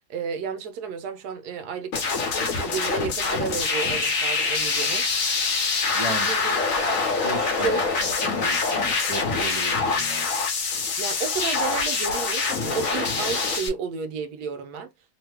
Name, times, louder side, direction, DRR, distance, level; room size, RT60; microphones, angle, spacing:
voice 1, 0.1-2.0 2.4-5.0 6.1-6.6 6.9-7.0 7.5-7.8 11.0-14.9, right 6 dB, 85° right, 1.2 m, -32 dB
sound 1, 1.9-13.7, left 4 dB, 65° left, 1.1 m, -25 dB
voice 2, 5.9-6.3 7.2-10.3, right 2 dB, 35° right, 0.5 m, -35 dB
3.1 x 2.1 x 3.3 m
omnidirectional pair, 1.7 m